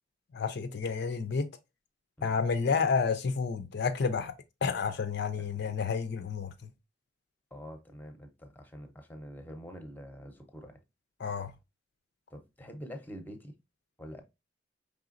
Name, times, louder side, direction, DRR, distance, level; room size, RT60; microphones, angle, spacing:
voice 1, 0.3-1.5 2.2-4.3 4.6-6.5 11.2-11.5, left 5 dB, 60° left, 0.4 m, -30 dB
voice 2, 5.4-5.7 7.5-10.8 12.3-13.5 14.0-14.2, equal, 10° left, 0.7 m, -46 dB
4.9 x 3.4 x 2.5 m
head